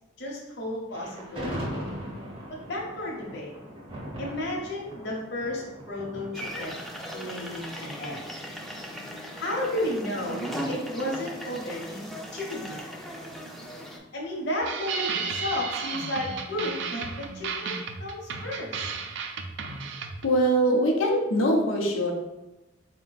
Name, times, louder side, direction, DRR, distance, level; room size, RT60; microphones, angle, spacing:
voice 1, 0.2-1.7 2.7-3.5 4.2-6.8 7.1-8.2 9.3-10.4 10.7-12.0 12.3-12.8 14.1-18.9, left 1 dB, 60° left, -3 dB, 0.9 m, -33 dB
Thunder, 0.9-8.1, equal, 30° right, 0.7 m, -39 dB
sound 1, 6.3-14.0, equal, ahead, 0.5 m, -37 dB
sound 2, 14.6-20.3, right 5 dB, 65° right, 0.4 m, -33 dB
voice 2, 20.2-22.1, right 1 dB, 90° left, 0 dB, 0.7 m, -22 dB
4.2 x 2.2 x 3.9 m, 1.0 s
head